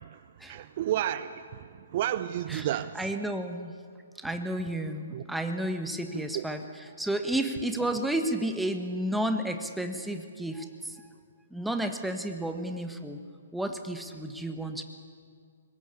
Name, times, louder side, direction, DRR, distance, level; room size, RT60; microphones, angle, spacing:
voice 1, 0.0-3.1 5.1-5.2 6.3-6.5, right 12 dB, 40° right, 14 dB, 0.6 m, -32 dB
voice 2, 3.0-3.7 4.2-6.6 7.0-11.0 11.5-13.2 13.5-14.8, right 1 dB, ahead, 6 dB, 1.4 m, -31 dB
22.5 x 20.0 x 8.4 m, 2.2 s
figure-of-eight pair, 130°, 0 cm